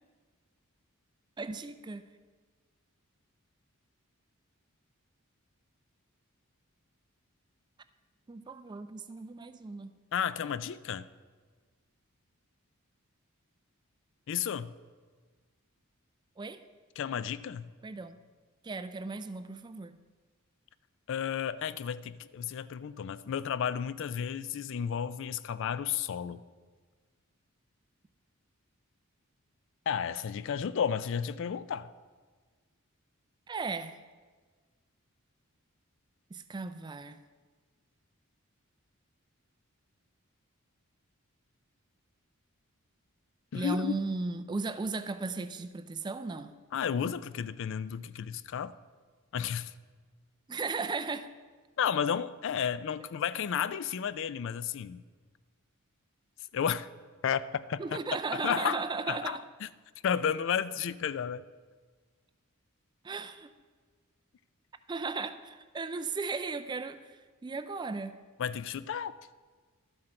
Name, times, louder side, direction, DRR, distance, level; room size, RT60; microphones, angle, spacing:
voice 1, 1.4-2.0 8.3-9.9 16.4-16.6 17.8-18.2 18.6-20.0 33.5-34.0 36.3-37.2 43.5-46.5 50.5-51.3 57.8-59.4 63.0-63.5 64.9-68.1, right 4 dB, 20° right, 11 dB, 0.3 m, -36 dB
voice 2, 10.1-11.1 14.3-14.7 17.0-17.7 21.1-26.4 29.9-31.9 43.5-43.9 46.7-48.8 49.3-49.7 51.8-55.0 56.5-56.9 57.2-58.0 58.3-59.7 60.0-61.4 68.4-69.1, left 8 dB, 60° left, 16 dB, 0.3 m, -32 dB
12.0 x 7.7 x 4.4 m, 1.5 s
head